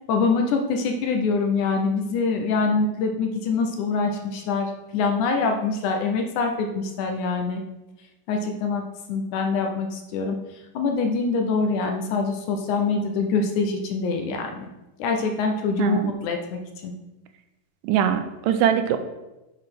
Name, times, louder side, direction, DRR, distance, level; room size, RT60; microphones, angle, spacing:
voice 1, 0.1-7.6 8.3-8.8 9.1-10.4 10.7-14.7 15.0-16.9, left 4 dB, 75° left, 3 dB, 2.0 m, -24 dB
voice 2, 15.8-16.1 17.8-19.0, right 9 dB, 85° right, 9 dB, 2.2 m, -22 dB
7.6 x 4.9 x 5.9 m, 1.0 s
omnidirectional pair, 4.0 m